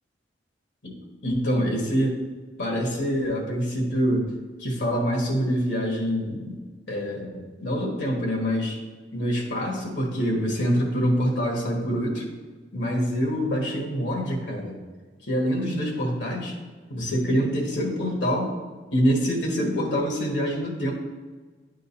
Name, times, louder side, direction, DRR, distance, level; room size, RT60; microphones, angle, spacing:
voice 1, 1.2-2.2 2.6-4.2 4.6-6.6 6.9-8.8 9.1-12.2 12.7-14.8 15.2-16.5 16.9-18.5 18.9-20.9, equal, 75° left, -1 dB, 1.5 m, -25 dB
10.5 x 3.8 x 2.8 m, 1.4 s
head